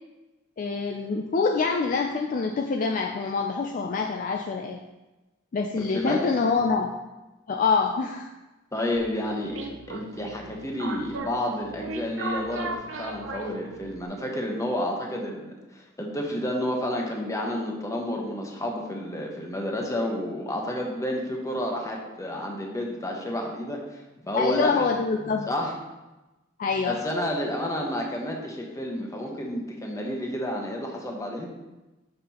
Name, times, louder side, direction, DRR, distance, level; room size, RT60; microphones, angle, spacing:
voice 1, 0.6-4.8 5.5-6.9 7.5-8.3 24.3-25.5 26.6-27.0, left 4 dB, 45° left, 3 dB, 0.4 m, -25 dB
voice 2, 5.8-6.2 8.7-12.7 13.0-24.9 25.5-25.7 26.8-31.5, left 1 dB, 15° left, 0 dB, 0.9 m, -30 dB
sound 1, 9.0-14.1, right 3 dB, 85° right, 0.7 m, -37 dB
6.7 x 5.5 x 2.9 m, 1.1 s
head